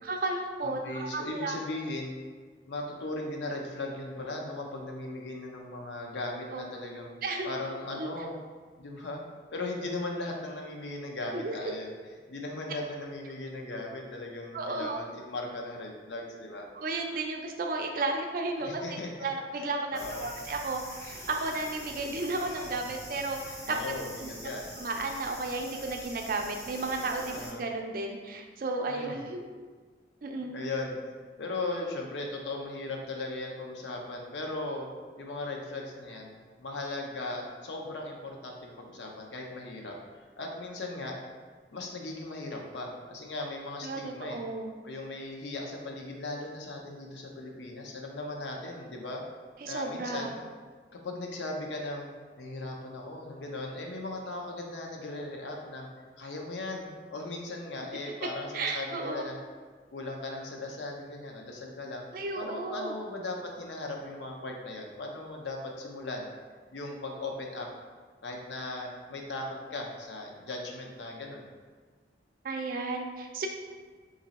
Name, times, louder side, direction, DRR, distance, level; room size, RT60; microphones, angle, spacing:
voice 1, 0.0-1.6 6.5-6.6 7.2-7.6 7.9-8.1 11.3-11.5 14.5-15.0 16.7-23.8 24.2-24.3 24.8-29.4 30.2-30.5 43.8-44.7 49.6-50.3 58.5-59.3 62.1-63.0 72.4-73.5, right 3 dB, 50° right, 3 dB, 0.4 m, -33 dB
voice 2, 0.6-2.2 2.7-7.1 7.4-8.4 8.8-9.2 9.5-11.9 12.3-16.7 18.6-19.1 19.6-19.7 19.9-20.3 23.6-24.7 27.3-27.6 28.9-29.2 30.5-31.0 31.4-34.9 35.2-40.0 40.4-41.2 41.7-44.4 44.8-49.2 49.6-50.4 50.9-52.1 52.4-55.9 56.2-59.3 59.9-62.0 62.4-66.3 66.7-67.7 68.2-71.5, left 2 dB, 90° left, 1 dB, 0.6 m, -38 dB
sound 1, 19.9-27.5, equal, 15° left, 0.6 m, -44 dB
3.0 x 2.6 x 4.0 m, 1.5 s
head